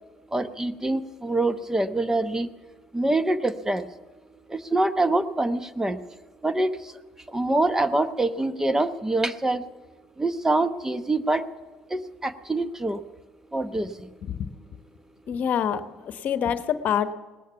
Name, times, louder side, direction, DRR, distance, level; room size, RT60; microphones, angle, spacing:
voice 1, 0.3-2.5 2.9-3.9 4.5-6.0 6.4-6.9 7.3-9.6 10.2-11.4 11.9-13.0 13.5-14.1, right 2 dB, 15° right, 12 dB, 0.9 m, -25 dB
voice 2, 15.3-17.1, left 8 dB, 55° left, 11 dB, 1.0 m, -26 dB
19.0 x 11.0 x 6.9 m, 1.3 s
hypercardioid pair, 70°, 3 cm